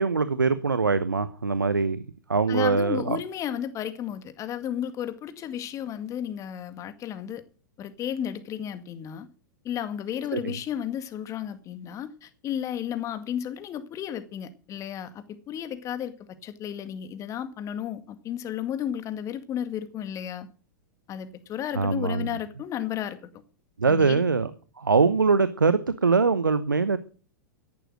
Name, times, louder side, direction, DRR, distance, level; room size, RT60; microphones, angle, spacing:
voice 1, 0.0-2.0 2.3-3.2 10.3-10.5 21.7-22.3 23.8-24.5 24.8-27.0, right 4 dB, 85° right, 1.0 m, -23 dB
voice 2, 2.5-7.4 7.8-9.3 9.6-20.5 21.1-23.4 23.9-24.2, left 10 dB, 30° left, 2.0 m, -33 dB
14.0 x 11.0 x 6.3 m
figure-of-eight pair, 100°, 10 cm